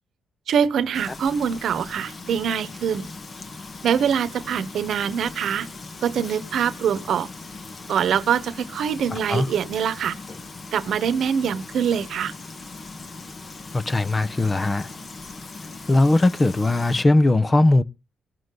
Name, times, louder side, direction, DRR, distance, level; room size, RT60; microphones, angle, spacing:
voice 1, 0.5-3.1 3.8-5.7 6.0-7.3 7.9-10.2 10.7-12.3, right 8 dB, 70° right, 1.0 m, -24 dB
Frying (food), 0.9-17.0, left 3 dB, 40° left, 1.5 m, -39 dB
voice 2, 9.1-9.5 13.7-14.9 15.9-17.8, left 2 dB, 25° left, 0.8 m, -19 dB
19.5 x 7.5 x 3.9 m
cardioid pair, 70°, 0 cm